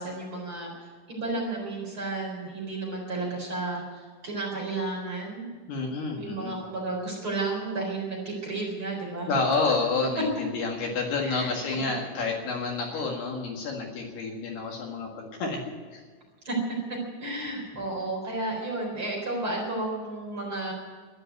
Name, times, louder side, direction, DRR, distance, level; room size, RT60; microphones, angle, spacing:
voice 1, 0.0-5.5 6.1-9.3 11.2-11.5 12.9-13.0 16.4-16.6 17.2-20.7, right 2 dB, 30° right, -2 dB, 4.4 m, -32 dB
voice 2, 5.7-6.6 9.3-16.0, left 3 dB, 65° left, 0 dB, 3.6 m, -29 dB
13.5 x 11.5 x 9.2 m, 1.5 s
omnidirectional pair, 5.4 m